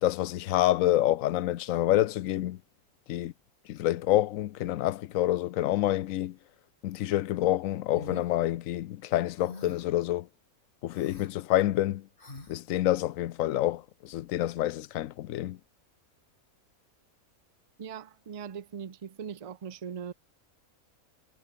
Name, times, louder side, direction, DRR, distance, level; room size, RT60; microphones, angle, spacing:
voice 1, 0.0-2.6 3.1-3.3 3.7-6.3 6.8-10.3 10.8-12.0 12.5-15.6, left 14 dB, 70° left, 1.0 m, -27 dB
sound 1, 7.9-8.3 9.4-9.9 10.9-11.3 12.2-12.6, left 2 dB, 35° left, 3.2 m, -44 dB
voice 2, 17.8-20.1, right 7 dB, 40° right, 0.5 m, -40 dB
omnidirectional pair, 1.5 m